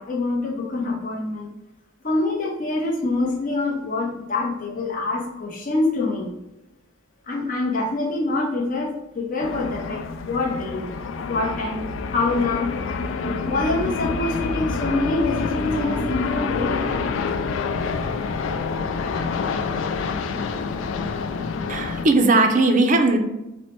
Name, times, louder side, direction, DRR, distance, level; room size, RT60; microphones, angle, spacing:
voice 1, 0.0-1.5 2.0-6.3 7.3-10.9 11.3-13.0 13.4-17.0, left 2 dB, 40° left, -2 dB, 0.7 m, -25 dB
sound 1, 9.4-22.0, left 4 dB, 70° left, 0.3 m, -27 dB
voice 2, 21.7-23.2, right 2 dB, 40° right, 6 dB, 0.5 m, -18 dB
4.3 x 2.1 x 4.4 m, 0.96 s
head